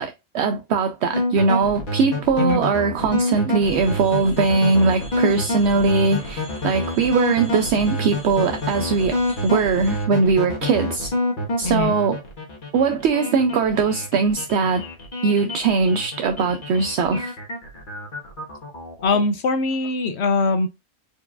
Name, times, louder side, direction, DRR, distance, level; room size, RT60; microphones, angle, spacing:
voice 1, 0.0-11.1 11.6-12.2 12.7-14.9 15.2-17.3, right 4 dB, 65° right, 0.7 m, -20 dB
sound 1, 1.1-19.2, left 1 dB, 35° left, 1.5 m, -27 dB
sound 2, 3.6-10.0, equal, 5° left, 0.9 m, -42 dB
voice 2, 11.6-11.9 19.0-20.7, left 3 dB, 65° left, 0.7 m, -21 dB
4.6 x 4.5 x 2.4 m
omnidirectional pair, 1.5 m